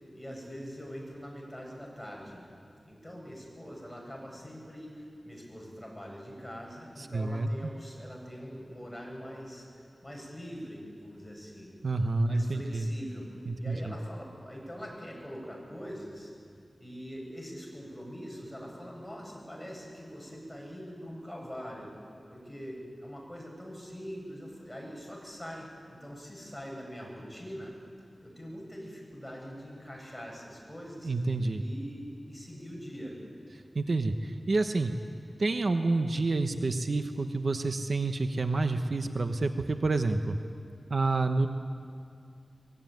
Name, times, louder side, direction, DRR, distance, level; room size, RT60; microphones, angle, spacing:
voice 1, 0.1-2.4 2.9-11.7 12.1-13.3 13.6-16.3 16.8-21.9 22.3-27.7 28.2-31.1 31.6-33.2, equal, 10° left, -1 dB, 7.8 m, -43 dB
voice 2, 7.0-7.5 11.8-12.9 13.5-13.9 31.0-31.6 33.7-34.9 35.4-40.4 40.9-41.5, right 3 dB, 65° right, 7 dB, 1.1 m, -28 dB
23.0 x 21.0 x 9.4 m, 2.3 s
wide cardioid pair, 80°, 0 cm